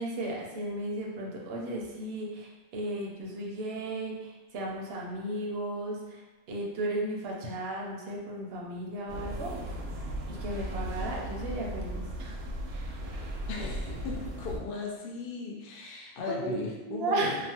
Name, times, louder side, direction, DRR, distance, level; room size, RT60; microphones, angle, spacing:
voice 1, 0.0-6.2 6.5-9.8 10.3-12.4 16.3-16.5 16.9-17.4, right 1 dB, 60° right, -2 dB, 0.7 m, -35 dB
sound 1, 9.1-14.6, right 1 dB, 85° right, 1.0 m, -36 dB
voice 2, 13.5-17.3, left 3 dB, 75° left, -2 dB, 0.5 m, -37 dB
2.9 x 2.1 x 2.7 m, 1.1 s
omnidirectional pair, 1.5 m